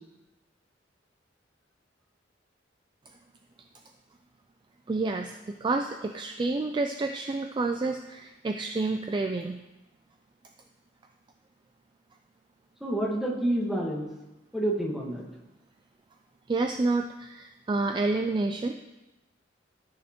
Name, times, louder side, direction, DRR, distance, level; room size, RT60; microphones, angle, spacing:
voice 1, 4.9-9.6 16.5-18.7, right 3 dB, 25° right, 5 dB, 0.3 m, -29 dB
voice 2, 12.8-14.1 14.5-15.2, right 1 dB, ahead, -3 dB, 1.3 m, -28 dB
13.5 x 6.3 x 2.9 m, 1.0 s
head